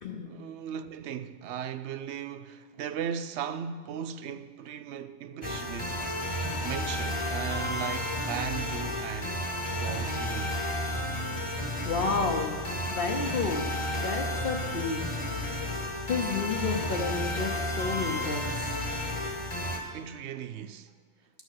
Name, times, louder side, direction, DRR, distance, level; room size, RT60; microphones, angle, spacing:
voice 1, 0.2-6.2 6.6-9.4 9.7-10.6 19.9-20.9, right 8 dB, 90° right, 0.9 m, -37 dB
sound 1, 5.4-19.8, left 1 dB, 30° left, 1.2 m, -32 dB
voice 2, 11.8-12.6 12.9-15.0 16.1-18.7, left 4 dB, 55° left, 1.0 m, -31 dB
11.5 x 6.6 x 6.6 m
omnidirectional pair, 1.1 m